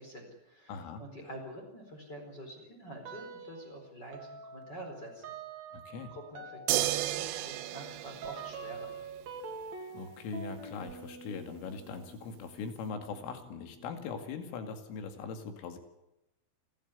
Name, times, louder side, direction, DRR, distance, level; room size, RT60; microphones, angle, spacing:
voice 1, 0.0-5.4 6.0-8.9, right 1 dB, 20° left, 1 dB, 4.4 m, -47 dB
voice 2, 0.7-1.0 5.7-6.1 9.9-15.8, left 5 dB, 80° left, 6 dB, 4.9 m, -41 dB
sound 1, 3.0-3.8 4.1-14.5, right 4 dB, 40° right, 3.2 m, -47 dB
sound 2, 6.7-9.2 10.9-11.0, right 14 dB, 90° right, 3.6 m, -33 dB
29.5 x 12.5 x 9.7 m, 0.93 s
omnidirectional pair, 5.7 m